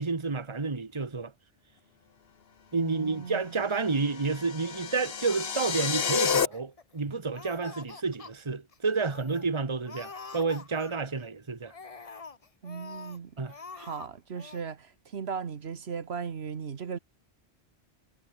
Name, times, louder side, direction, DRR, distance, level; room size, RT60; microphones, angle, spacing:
voice 1, 0.0-1.3 2.7-11.7 13.4-13.5, right 4 dB, 25° right, 1.4 m, -30 dB
voice 2, 2.7-3.7 12.6-13.5 13.7-17.0, right 6 dB, 70° right, 1.4 m, -37 dB
sound 1, 3.9-6.5, left 6 dB, 65° left, 1.4 m, -30 dB
Laughter, 5.6-7.0 7.3-8.3 8.7-8.8 9.1-9.5 9.8-11.2 11.6-13.2 13.5-14.1 14.3-14.6, left 4 dB, 35° left, 1.1 m, -46 dB
omnidirectional pair, 1.1 m